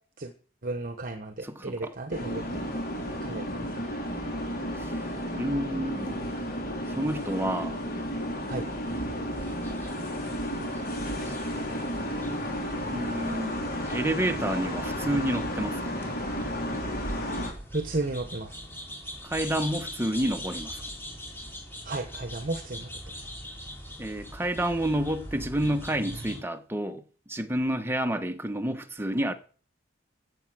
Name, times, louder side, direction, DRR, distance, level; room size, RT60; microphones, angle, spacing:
voice 1, 0.6-2.6 3.2-3.5 8.5-8.7 17.7-18.6 21.8-22.9, right 2 dB, 50° right, 1.1 m, -33 dB
voice 2, 1.4-1.9 4.8-5.0 5.3-6.2 6.9-7.8 12.9-13.6 13.9-16.0 19.2-20.8 24.0-27.0 27.3-29.3, right 1 dB, 15° right, 1.1 m, -29 dB
sound 1, 2.1-17.5, equal, 55° left, 4.1 m, -32 dB
sound 2, 9.4-26.4, equal, 15° left, 3.7 m, -42 dB
15.0 x 8.5 x 6.2 m
head